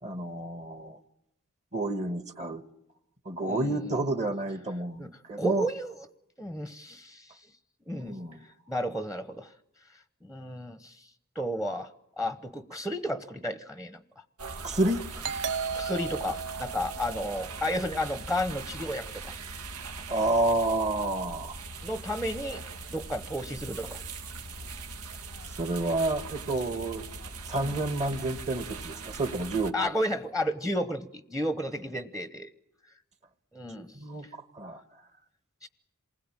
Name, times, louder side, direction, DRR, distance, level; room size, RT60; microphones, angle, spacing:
voice 1, 0.0-1.0 1.7-2.6 3.2-5.7 8.0-8.4 14.6-15.2 20.1-21.6 25.6-27.0 27.5-29.7 33.7-34.8, right 2 dB, 30° right, 10 dB, 1.7 m, -30 dB
voice 2, 3.4-3.8 5.0-5.9 6.4-7.5 7.9-9.5 9.9-11.1 11.3-11.9 12.2-14.0 15.7-19.4 21.8-22.6 22.9-24.0 27.6-27.7 29.7-32.5 33.5-34.4 35.6-35.7, equal, 5° right, 11 dB, 1.0 m, -33 dB
sound 1, 14.4-29.7, right 3 dB, 85° right, 2.1 m, -41 dB
Doorbell, 15.2-18.6, right 6 dB, 55° right, 1.0 m, -36 dB
27.5 x 20.5 x 8.9 m, 0.82 s
head